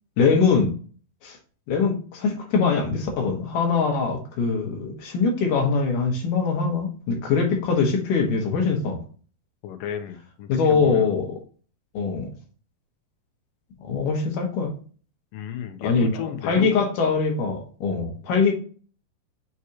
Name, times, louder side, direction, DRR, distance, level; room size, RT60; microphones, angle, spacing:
voice 1, 0.2-0.7 1.2-1.4 1.7-9.0 10.5-11.3 11.9-12.3 13.8-14.7 15.8-18.5, left 5 dB, 65° left, 2.5 m, -23 dB
voice 2, 9.6-11.2 15.3-16.8, left 9 dB, 80° left, 2.0 m, -33 dB
6.3 x 5.2 x 2.9 m
omnidirectional pair, 4.8 m